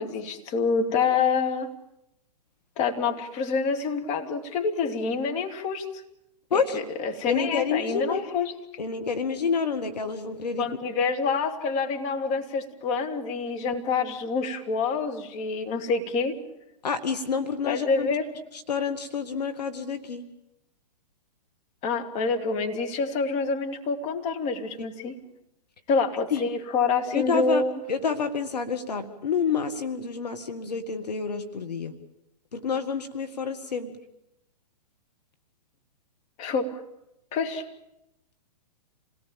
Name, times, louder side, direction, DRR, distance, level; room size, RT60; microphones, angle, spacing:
voice 1, 0.0-1.7 2.8-5.8 6.5-8.5 10.6-16.4 17.7-18.3 21.8-25.1 25.9-27.7 36.4-36.7 37.3-37.6, left 4 dB, 30° left, 5 dB, 2.6 m, -27 dB
voice 2, 7.3-8.3 8.8-10.7 16.8-18.1 18.5-20.2 26.3-26.4 27.1-31.9 32.5-33.9, left 5 dB, 75° left, 8 dB, 1.8 m, -28 dB
28.0 x 18.0 x 9.0 m, 0.86 s
figure-of-eight pair, 120°, 21 cm